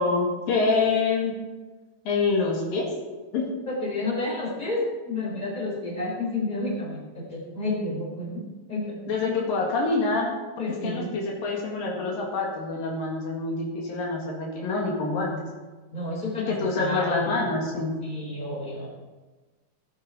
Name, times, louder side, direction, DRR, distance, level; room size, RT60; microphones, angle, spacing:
voice 1, 0.0-1.3 2.1-2.9 3.3-3.5 9.1-10.3 10.8-15.4 16.6-18.0, left 3 dB, 75° left, -1 dB, 3.7 m, -26 dB
voice 2, 3.7-8.4 8.7-9.4 10.6-11.2 15.9-17.3 18.0-18.9, left 2 dB, 10° left, -4 dB, 4.4 m, -30 dB
16.5 x 9.0 x 4.8 m, 1.3 s
omnidirectional pair, 4.0 m